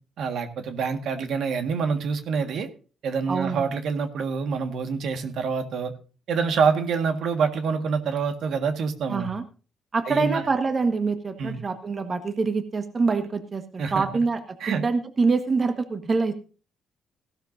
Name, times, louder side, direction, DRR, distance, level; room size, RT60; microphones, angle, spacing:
voice 1, 0.2-2.7 3.0-5.9 6.3-9.3 10.0-10.4 11.4-11.6 13.8-14.2 14.6-14.8, right 5 dB, 70° right, 6 dB, 1.7 m, -26 dB
voice 2, 3.3-3.7 9.1-9.4 9.9-14.4 14.7-16.3, right 4 dB, 35° right, 8 dB, 1.5 m, -25 dB
16.5 x 12.5 x 2.7 m, 0.36 s
cardioid pair, 90°, 0 cm